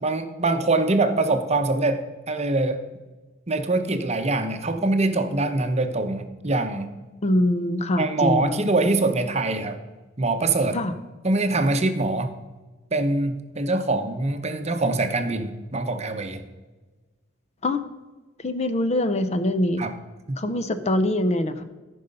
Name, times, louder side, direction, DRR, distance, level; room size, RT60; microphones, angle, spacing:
voice 1, 0.0-2.8 3.5-6.9 8.0-9.8 10.2-10.8 11.2-12.3 12.9-16.4 19.8-19.9 20.3-20.4, right 2 dB, 35° right, 7 dB, 0.8 m, -24 dB
voice 2, 7.2-8.7 10.7-10.9 17.6-17.8 18.4-19.8 20.4-21.6, left 1 dB, 35° left, 10 dB, 0.6 m, -23 dB
13.5 x 5.5 x 5.4 m, 1.2 s
head